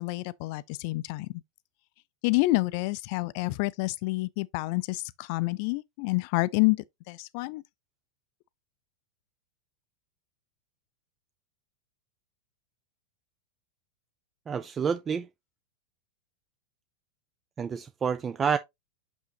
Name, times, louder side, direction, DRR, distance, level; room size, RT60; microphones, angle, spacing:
voice 1, 0.0-1.4 2.2-6.8 7.1-7.6, left 22 dB, 45° left, 0.4 m, -28 dB
voice 2, 14.5-15.3 17.6-18.6, right 6 dB, 20° right, 0.5 m, -28 dB
6.3 x 5.7 x 2.9 m
figure-of-eight pair, 90°, 0 cm